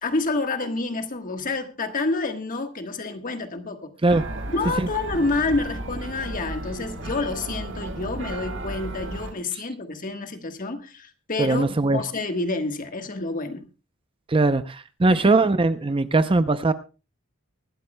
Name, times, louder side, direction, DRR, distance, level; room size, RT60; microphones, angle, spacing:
voice 1, 0.0-3.9 4.5-13.7 15.1-15.5, left 3 dB, 40° left, 1.3 m, -28 dB
sound 1, 4.1-9.3, right 1 dB, 60° right, 1.7 m, -34 dB
voice 2, 11.4-12.0 14.3-16.7, right 3 dB, 25° right, 0.5 m, -20 dB
24.0 x 12.5 x 2.2 m
head